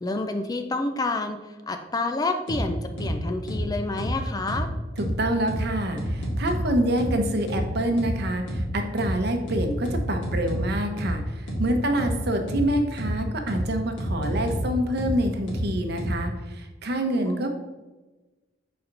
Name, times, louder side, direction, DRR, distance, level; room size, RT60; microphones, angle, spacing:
voice 1, 0.0-1.4 1.7-4.7 17.2-17.5, left 2 dB, 20° left, 6 dB, 0.4 m, -29 dB
sound 1, 2.5-2.6 3.0-3.1 3.5-3.6 4.0-4.1 4.5-4.6 5.0-5.1 5.5-5.6 6.0-6.6 7.0-7.1 7.5-7.6 8.0-8.1 8.5-8.6 9.0-9.1 9.5-10.6 11.0-11.1 11.5-11.6 12.0-12.1 12.5-12.6 13.0-13.1 13.5-13.6 14.0-14.6 15.0-15.1 15.5-15.6 16.0-16.1, right 1 dB, 85° left, 1.8 m, -29 dB
voice 2, 5.0-17.5, right 1 dB, 55° right, 5 dB, 0.8 m, -27 dB
5.9 x 4.2 x 3.8 m, 1.2 s
head